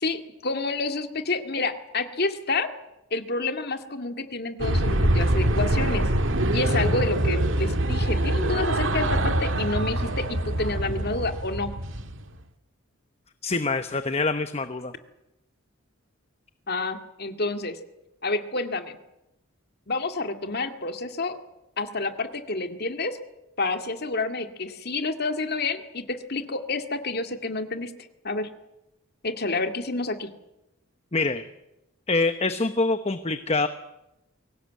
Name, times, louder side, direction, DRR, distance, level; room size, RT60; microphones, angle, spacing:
voice 1, 0.0-2.7 3.1-6.1 6.5-11.7 16.7-17.8 18.2-19.0 19.9-21.4 21.8-23.2 23.6-27.9 28.2-28.5 29.2-30.3, left 3 dB, 50° left, 7 dB, 2.1 m, -29 dB
sound 1, 4.6-12.2, right 1 dB, 65° right, 1.9 m, -24 dB
voice 2, 13.4-14.9 31.1-31.4 32.1-33.7, left 3 dB, 30° left, 10 dB, 0.9 m, -25 dB
23.0 x 18.0 x 9.3 m, 0.92 s
head